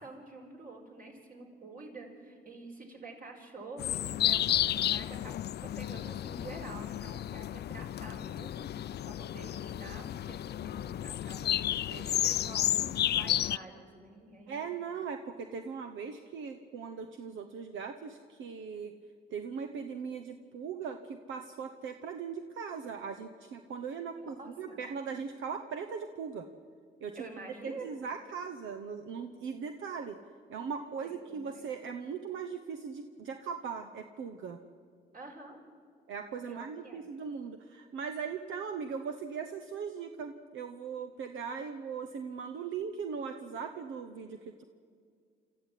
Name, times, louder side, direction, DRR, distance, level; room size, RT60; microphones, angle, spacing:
voice 1, 0.0-8.7 9.0-14.7 24.2-24.8 27.2-28.0 31.3-31.6 35.1-35.6 36.4-37.1, right 3 dB, 45° right, 1 dB, 5.1 m, -48 dB
sound 1, 3.8-13.6, left 12 dB, 55° left, 0.5 m, -32 dB
voice 2, 14.5-18.9 19.3-26.5 27.0-27.3 27.6-30.2 30.5-34.6 36.1-44.6, right 6 dB, 75° right, 7 dB, 1.1 m, -39 dB
26.5 x 14.0 x 9.2 m, 2.1 s
cardioid pair, 90°, 20 cm